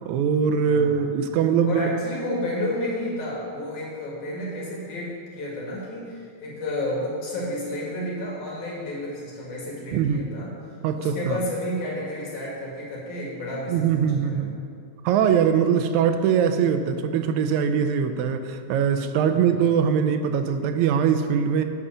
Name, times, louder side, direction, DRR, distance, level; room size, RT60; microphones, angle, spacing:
voice 1, 0.0-1.9 9.9-10.2 10.8-11.4 13.7-14.5 15.0-21.7, right 7 dB, 80° right, 8 dB, 2.0 m, -22 dB
voice 2, 0.6-1.1 1.6-10.5 10.9-14.6 19.3-19.6, left 1 dB, 90° left, -4 dB, 3.6 m, -31 dB
8.3 x 5.6 x 7.9 m, 2.3 s
omnidirectional pair, 3.3 m